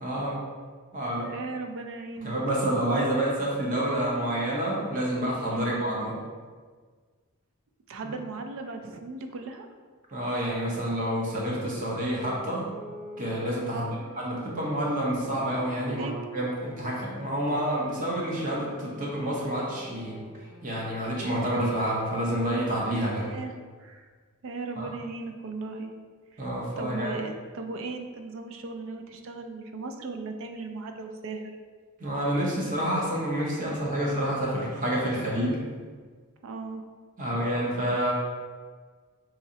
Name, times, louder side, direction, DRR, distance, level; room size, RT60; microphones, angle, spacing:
voice 1, 0.0-0.4 0.9-1.3 2.2-6.2 10.1-12.7 13.2-20.2 20.6-23.2 24.8-24.9 26.4-27.2 32.0-35.6 37.2-38.1, right 1 dB, 40° right, -4 dB, 0.9 m, -28 dB
voice 2, 1.2-2.4 5.5-5.8 7.9-9.7 13.7-14.0 15.9-16.1 23.2-23.5 23.8-24.1 24.4-25.9 26.3-26.5 26.8-31.5 36.4-36.8, right 3 dB, 65° right, 5 dB, 0.4 m, -37 dB
sound 1, 11.5-21.5, left 1 dB, 5° right, 1.3 m, -46 dB
3.8 x 3.1 x 2.7 m, 1.5 s
head